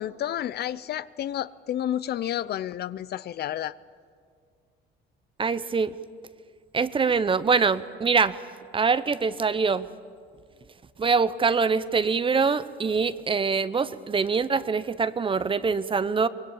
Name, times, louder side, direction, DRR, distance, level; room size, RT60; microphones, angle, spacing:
voice 1, 0.0-3.8, left 11 dB, 55° left, 0.6 m, -30 dB
voice 2, 5.4-5.9 6.7-8.4 8.7-9.9 11.0-16.3, right 5 dB, 25° right, 0.8 m, -24 dB
24.0 x 20.5 x 8.7 m
cardioid pair, 110°, 20 cm